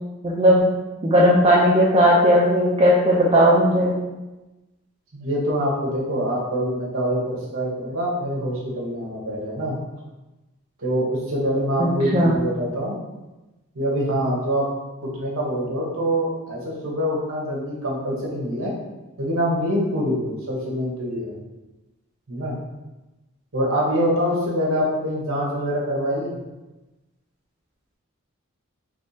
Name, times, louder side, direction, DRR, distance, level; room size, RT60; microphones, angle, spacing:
voice 1, 0.2-0.7 1.0-4.0 11.8-12.3, equal, 25° right, -6 dB, 0.5 m, -17 dB
voice 2, 5.1-9.7 10.8-12.9 13.7-14.7 15.1-18.7 19.2-21.4 22.3-22.6 23.5-26.4, equal, 60° right, -4 dB, 1.0 m, -25 dB
3.5 x 3.1 x 2.7 m, 1.1 s
head